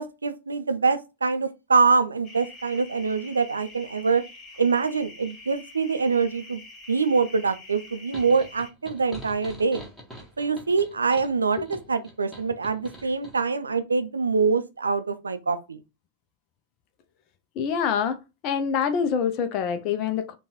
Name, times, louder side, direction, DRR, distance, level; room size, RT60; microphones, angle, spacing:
voice 1, 0.0-4.2 4.6-6.6 6.9-9.8 10.4-15.8, right 4 dB, 75° right, 0.4 m, -24 dB
sound 1, 2.2-8.7, left 2 dB, 25° left, 1.2 m, -46 dB
sound 2, 8.1-13.4, equal, 5° left, 1.3 m, -44 dB
voice 2, 17.6-18.2 18.4-20.3, left 7 dB, 40° left, 0.5 m, -25 dB
3.9 x 2.3 x 2.9 m
figure-of-eight pair, 90°, 0 cm